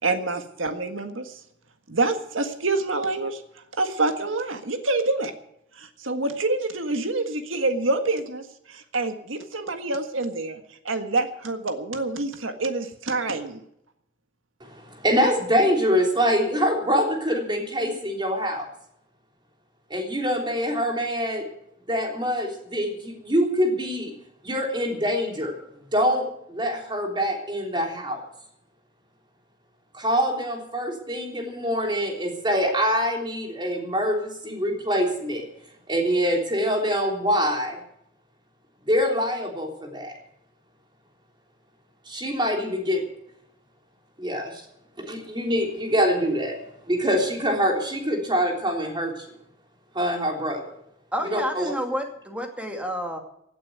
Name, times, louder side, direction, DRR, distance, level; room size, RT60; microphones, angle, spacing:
voice 1, 0.0-1.4 1.9-3.4 3.8-5.3 5.8-10.6 10.8-13.6, right 2 dB, 85° right, 7 dB, 1.6 m, -27 dB
voice 2, 14.6-18.7 19.9-21.4 21.9-24.1 24.4-25.5 25.9-28.2 29.9-35.5 35.9-37.8 38.9-40.1 42.1-43.0 44.2-44.6 45.0-46.6 46.9-49.2 49.9-50.6 51.2-51.7, equal, 25° right, 2 dB, 3.5 m, -25 dB
voice 3, 51.1-53.2, equal, 5° right, 4 dB, 2.4 m, -29 dB
17.0 x 8.8 x 8.0 m, 0.76 s
head